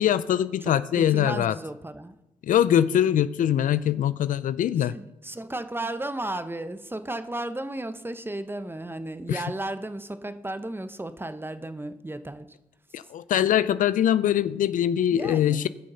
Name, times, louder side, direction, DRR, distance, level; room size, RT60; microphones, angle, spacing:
voice 1, 0.0-1.5 2.4-4.9 9.3-9.4 12.9-15.7, left 10 dB, 75° left, 0.4 m, -23 dB
voice 2, 0.6-2.2 4.8-12.6 15.1-15.7, right 1 dB, 15° right, 0.9 m, -34 dB
18.5 x 6.4 x 5.6 m
supercardioid pair, 45°, 14 cm